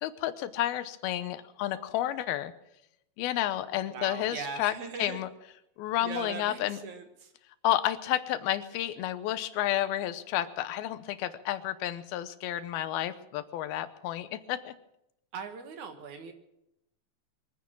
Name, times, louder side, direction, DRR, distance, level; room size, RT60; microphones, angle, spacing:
voice 1, 0.0-2.5 3.2-4.7 5.0-5.3 5.8-6.8 7.6-14.7, left 13 dB, 85° left, 12 dB, 2.8 m, -31 dB
voice 2, 3.9-5.2 6.0-7.3 15.3-16.3, right 6 dB, 60° right, 6 dB, 2.6 m, -40 dB
24.0 x 9.5 x 6.1 m, 0.83 s
omnidirectional pair, 4.2 m